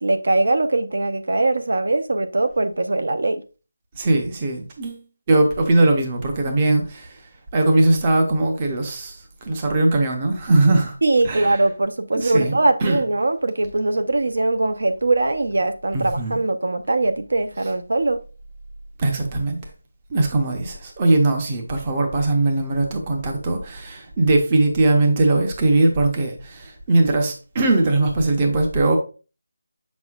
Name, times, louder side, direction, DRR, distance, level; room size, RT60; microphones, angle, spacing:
voice 1, 0.0-3.4 11.0-18.2, right 2 dB, 55° right, 0.6 m, -21 dB
voice 2, 3.9-11.0 11.2-11.6 12.1-12.5 12.8-13.0 15.9-16.4 19.0-19.6 20.1-29.0, right 2 dB, 15° right, 0.6 m, -20 dB
7.7 x 6.1 x 2.4 m
figure-of-eight pair, 180°, 0 cm